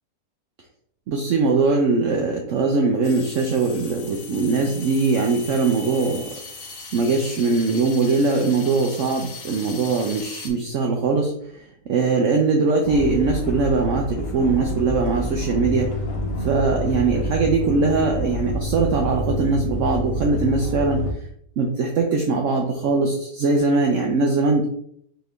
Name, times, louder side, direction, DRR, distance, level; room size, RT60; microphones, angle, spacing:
voice 1, 1.1-6.2 6.9-11.3 11.9-15.9 16.4-21.0 21.6-24.7, right 3 dB, 70° right, 2 dB, 0.7 m, -21 dB
sound 1, 3.0-10.5, left 4 dB, 60° left, 1.1 m, -39 dB
sound 2, 12.8-21.1, equal, 85° left, 1.4 m, -28 dB
4.4 x 2.9 x 3.2 m, 0.68 s
omnidirectional pair, 1.8 m